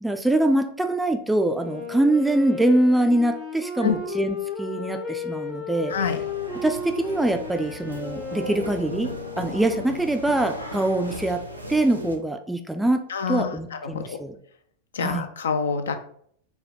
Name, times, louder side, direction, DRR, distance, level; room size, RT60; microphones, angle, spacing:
voice 1, 0.0-5.9 6.6-11.4 11.7-14.3 15.0-15.3, right 1 dB, 5° right, 6 dB, 0.3 m, -24 dB
Wind instrument woodwind instrument, 1.5-10.1, left 4 dB, 35° left, 0.7 m, -35 dB
sound 1, 5.9-12.1, equal, 90° right, 0.6 m, -37 dB
voice 2, 13.1-14.2 14.9-15.9, left 6 dB, 65° left, 7 dB, 0.4 m, -27 dB
4.3 x 2.2 x 3.5 m, 0.64 s
figure-of-eight pair, 90°, 0 cm